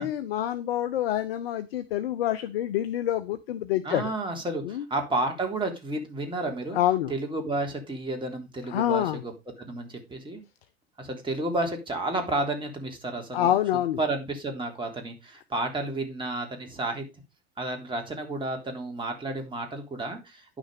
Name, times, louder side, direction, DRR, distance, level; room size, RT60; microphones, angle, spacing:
voice 1, 0.0-4.1 4.6-4.8 6.7-7.1 8.7-9.2 13.3-14.0, left 12 dB, 70° left, 12 dB, 0.9 m, -27 dB
voice 2, 3.8-6.8 7.1-9.3 9.6-10.4 11.0-13.5 14.0-17.1 17.6-20.4, right 2 dB, 15° right, 3 dB, 3.6 m, -31 dB
10.5 x 6.4 x 4.9 m, 0.24 s
hypercardioid pair, 85°, 30 cm